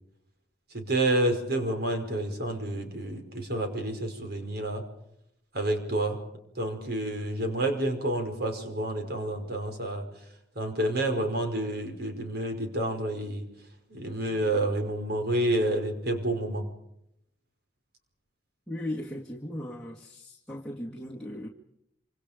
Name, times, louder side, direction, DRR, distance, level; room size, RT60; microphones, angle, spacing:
voice 1, 0.7-4.8 5.5-6.2 6.5-10.0 10.5-13.4 13.9-16.7, right 1 dB, 60° right, 5.2 m, -29 dB
voice 2, 18.7-21.5, left 1 dB, 5° left, 2.2 m, -37 dB
27.0 x 26.5 x 5.2 m
head